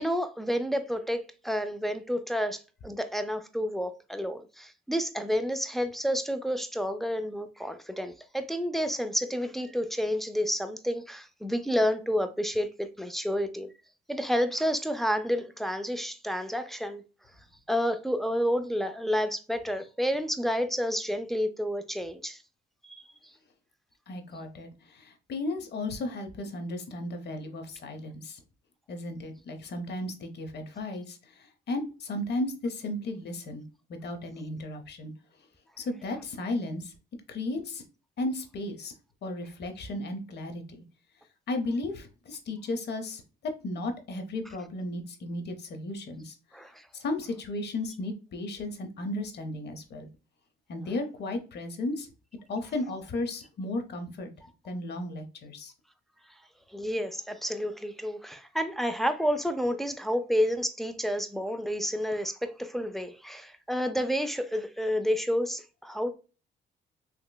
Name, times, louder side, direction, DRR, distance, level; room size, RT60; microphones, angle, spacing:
voice 1, 0.0-13.7 14.1-17.0 17.7-22.4 22.8-23.0 46.5-46.8 56.7-66.1, equal, ahead, 0.4 m, -30 dB
voice 2, 24.1-28.4 28.9-33.6 33.9-35.1 35.8-36.9 37.3-37.8 38.2-38.9 39.2-40.8 41.5-46.3 46.9-50.1 50.7-52.1 52.5-54.3 54.6-55.7, left 2 dB, 60° left, 0.7 m, -34 dB
3.2 x 2.9 x 2.2 m
cardioid pair, 90°, 20 cm